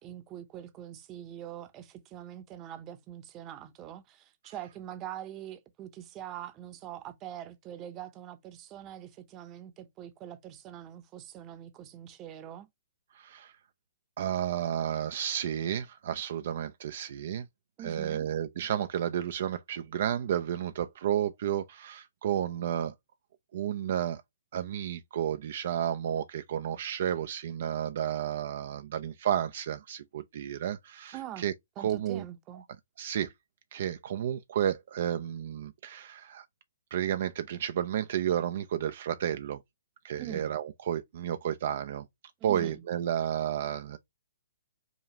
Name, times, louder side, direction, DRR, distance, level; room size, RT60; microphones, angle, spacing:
voice 1, 0.0-12.7 17.8-18.3 31.1-31.4 31.8-32.6 40.2-40.5 42.4-42.8, right 11 dB, 25° right, 0.7 m, -43 dB
voice 2, 13.1-13.5 14.2-17.4 17.8-22.9 23.5-24.2 24.5-32.2 33.0-33.3 33.7-36.4 36.9-39.6 40.0-42.1 42.4-44.0, right 10 dB, 55° right, 0.4 m, -32 dB
5.0 x 2.3 x 2.8 m
hypercardioid pair, 130°, 0 cm